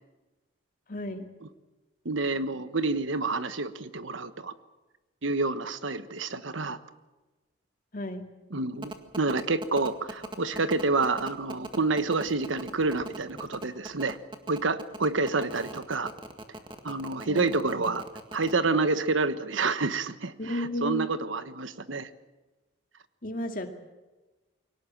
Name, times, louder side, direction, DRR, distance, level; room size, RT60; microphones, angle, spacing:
voice 1, 0.9-1.3 7.9-8.3 17.2-17.5 20.4-21.1 23.2-23.7, left 1 dB, 45° left, 5 dB, 2.2 m, -33 dB
voice 2, 2.0-4.5 5.2-6.8 8.5-14.2 14.5-16.1 16.8-18.0 18.3-22.1, right 3 dB, 80° right, 12 dB, 1.3 m, -28 dB
sound 1, 8.8-18.5, right 2 dB, 25° right, 1.8 m, -40 dB
23.5 x 18.0 x 7.5 m, 1.2 s
head